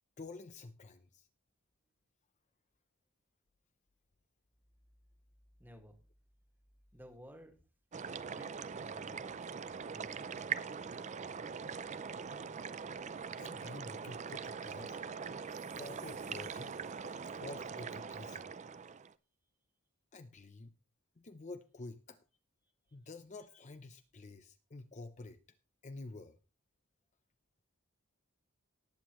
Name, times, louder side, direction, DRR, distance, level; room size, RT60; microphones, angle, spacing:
voice 1, 0.2-1.3 13.4-15.0 15.8-16.8 17.0-18.5 20.1-20.7 21.2-22.2 22.9-25.4 25.8-26.4, left 3 dB, 35° left, 9 dB, 0.6 m, -49 dB
voice 2, 5.6-6.0 6.9-7.6 8.3-9.3 9.9-10.4, equal, 10° right, 4 dB, 1.8 m, -55 dB
sound 1, 7.9-19.1, right 6 dB, 35° right, 0.5 m, -42 dB
sound 2, 15.4-17.9, right 11 dB, 60° right, 1.8 m, -62 dB
18.5 x 8.2 x 3.0 m, 0.34 s
head